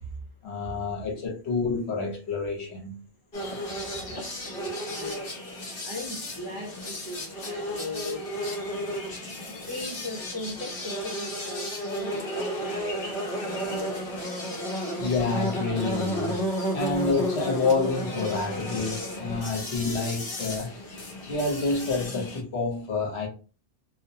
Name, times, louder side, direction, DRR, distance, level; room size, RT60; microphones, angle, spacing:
voice 1, 0.4-3.0 15.0-16.5 16.7-20.7 21.3-23.3, left 3 dB, 70° left, 1.1 m, -28 dB
sound 1, 3.3-22.4, equal, 55° left, 1.0 m, -33 dB
voice 2, 4.1-5.3 5.8-8.2 9.6-13.1 13.4-14.0 14.7-15.0, left 1 dB, 30° right, 0.6 m, -38 dB
2.5 x 2.1 x 2.7 m
omnidirectional pair, 1.2 m